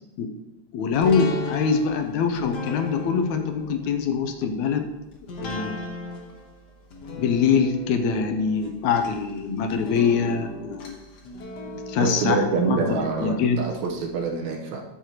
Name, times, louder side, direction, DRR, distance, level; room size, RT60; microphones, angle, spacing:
voice 1, 0.7-4.9 5.4-5.8 7.1-10.9 11.9-13.7, left 6 dB, 80° left, 6 dB, 2.1 m, -24 dB
sound 1, 0.9-13.9 14.3-14.4, left 3 dB, 55° left, 1.2 m, -37 dB
voice 2, 12.0-14.8, right 4 dB, 75° right, 1 dB, 2.4 m, -26 dB
13.0 x 6.5 x 3.0 m, 0.97 s
omnidirectional pair, 3.3 m